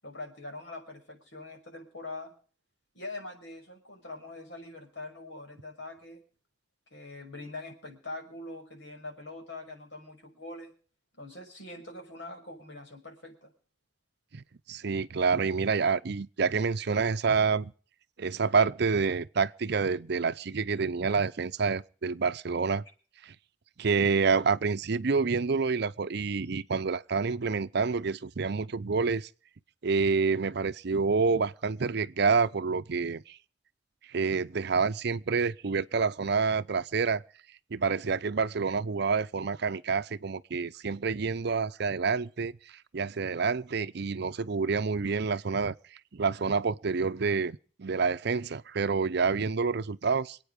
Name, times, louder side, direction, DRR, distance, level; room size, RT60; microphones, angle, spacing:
voice 1, 0.0-2.3 2.9-6.2 6.9-10.7 11.2-13.5, left 2 dB, 70° left, 5.8 m, -43 dB
voice 2, 14.3-17.7 18.2-22.8 23.2-23.3 23.8-29.3 29.8-33.4 34.1-37.2 37.7-42.5 42.9-45.7 46.1-50.4, right 5 dB, 60° right, 0.6 m, -28 dB
26.5 x 9.1 x 5.2 m
head